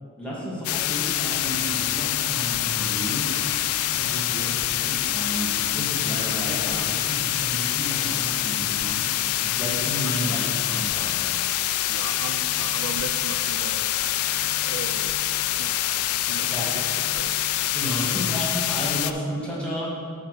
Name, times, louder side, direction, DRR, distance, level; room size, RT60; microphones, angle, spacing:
voice 1, 0.2-3.3 3.9-4.5 4.8-9.0 9.4-11.2 16.5-16.7 17.7-20.0, equal, 5° left, -7 dB, 1.9 m, -32 dB
sound 1, 0.6-19.1, left 13 dB, 75° left, 0.3 m, -25 dB
sound 2, 1.3-8.2, right 1 dB, 85° right, 1.7 m, -45 dB
voice 2, 11.9-13.9 14.6-15.2 15.6-15.7 16.3-16.8 17.1-17.3 18.2-18.3, right 5 dB, 65° right, 8 dB, 0.4 m, -37 dB
7.8 x 4.1 x 6.6 m, 2.3 s
head